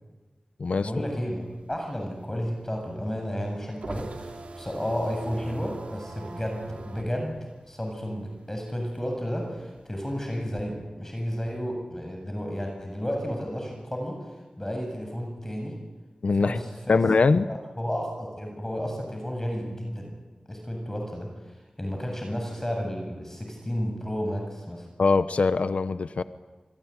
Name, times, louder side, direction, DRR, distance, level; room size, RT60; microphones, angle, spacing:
voice 1, 0.8-14.2 14.6-15.8 16.4-17.2 17.5-20.1 20.5-21.3 21.8-24.9, equal, 20° left, 2 dB, 7.7 m, -32 dB
sound 1, 1.4-8.5 8.9-10.6, right 3 dB, 80° right, 3.4 m, -41 dB
voice 2, 16.2-16.6 16.9-17.5 25.0-26.2, left 4 dB, 80° left, 13 dB, 0.9 m, -22 dB
28.0 x 21.0 x 9.9 m, 1.2 s
cardioid pair, 45°, 2 cm